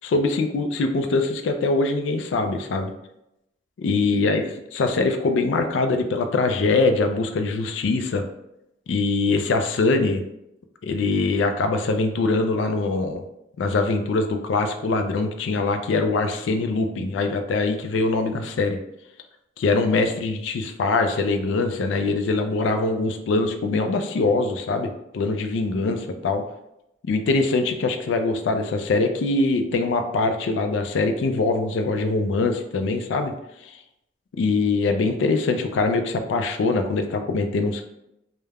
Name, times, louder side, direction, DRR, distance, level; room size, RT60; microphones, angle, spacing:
voice 1, 0.0-2.9 3.8-4.4 4.7-8.2 8.9-10.2 10.8-13.2 13.6-18.8 19.6-26.4 27.1-33.3 33.6-33.7 34.3-37.9, left 3 dB, 85° left, 6 dB, 0.3 m, -23 dB
2.3 x 2.1 x 3.2 m, 0.84 s
head